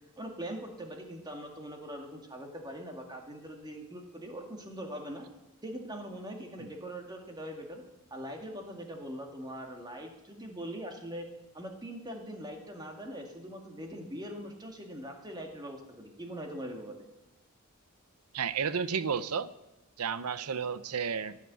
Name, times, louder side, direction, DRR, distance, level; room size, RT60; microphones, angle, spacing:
voice 1, 0.2-5.3 5.6-7.8 8.1-11.3 11.5-17.0, equal, 20° right, 2 dB, 1.9 m, -42 dB
voice 2, 18.3-19.5 20.0-21.4, right 6 dB, 85° right, 14 dB, 0.7 m, -32 dB
15.0 x 6.6 x 8.3 m, 0.94 s
head